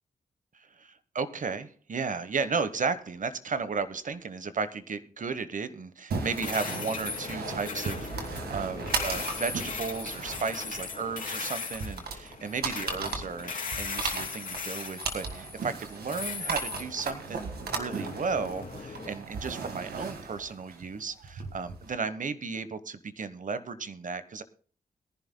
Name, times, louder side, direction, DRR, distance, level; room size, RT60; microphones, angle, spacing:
voice 1, 0.5-24.4, right 5 dB, 55° right, 13 dB, 1.1 m, -34 dB
sound 1, 6.1-21.9, right 4 dB, 85° right, 1.7 m, -37 dB
sound 2, 6.3-19.1, left 4 dB, 60° left, 2.6 m, -38 dB
21.5 x 11.0 x 2.2 m, 0.43 s
cardioid pair, 50°, 16 cm